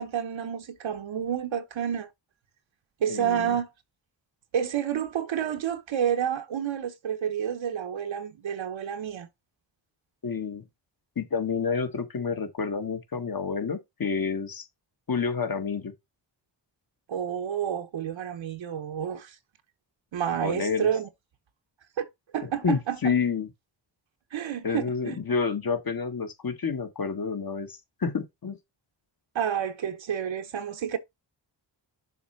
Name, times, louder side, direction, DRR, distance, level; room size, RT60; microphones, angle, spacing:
voice 1, 0.0-2.1 3.0-3.7 4.5-9.3 17.1-19.4 20.1-21.1 22.0-22.1 22.3-23.1 24.3-25.2 29.3-31.0, right 9 dB, 75° right, 1.0 m, -29 dB
voice 2, 3.1-3.6 10.2-10.6 11.2-14.7 15.1-15.9 20.4-20.9 22.4-23.5 24.6-28.6, left 5 dB, 50° left, 1.8 m, -29 dB
7.0 x 3.3 x 5.8 m
cardioid pair, 45°, 46 cm